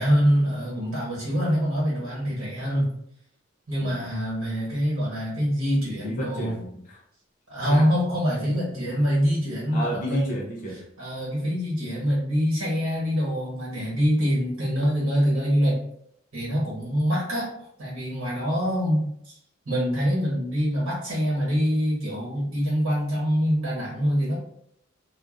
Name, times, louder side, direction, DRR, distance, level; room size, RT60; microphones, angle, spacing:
voice 1, 0.0-2.9 3.7-6.5 7.5-10.3 11.0-15.8 16.3-17.5 17.8-19.3 19.7-24.4, equal, 90° right, -6 dB, 1.1 m, -25 dB
voice 2, 6.0-7.0 7.7-7.9 9.7-10.9, equal, 40° left, -2 dB, 0.4 m, -32 dB
2.4 x 2.2 x 2.4 m, 0.71 s
head